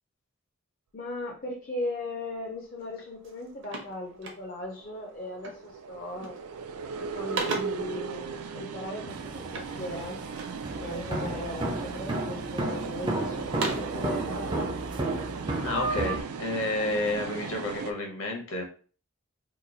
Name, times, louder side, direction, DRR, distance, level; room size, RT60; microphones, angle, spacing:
voice 1, 0.9-6.4 7.0-10.2 10.8-14.7, left 2 dB, 40° left, -2 dB, 0.5 m, -38 dB
sound 1, 2.8-2.9 3.2-4.8 5.4-5.7 6.1-6.6 6.9-7.9 9.5-10.7 11.2-11.8 12.3-13.0 13.4-14.0, right 3 dB, 55° right, 0.7 m, -37 dB
sound 2, 3.8-17.9, right 5 dB, 90° right, 0.4 m, -37 dB
sound 3, 9.1-16.2, right 2 dB, 20° right, 0.4 m, -33 dB
voice 2, 15.6-18.6, left 2 dB, 60° left, 1 dB, 0.9 m, -30 dB
2.9 x 2.2 x 3.9 m, 0.39 s
head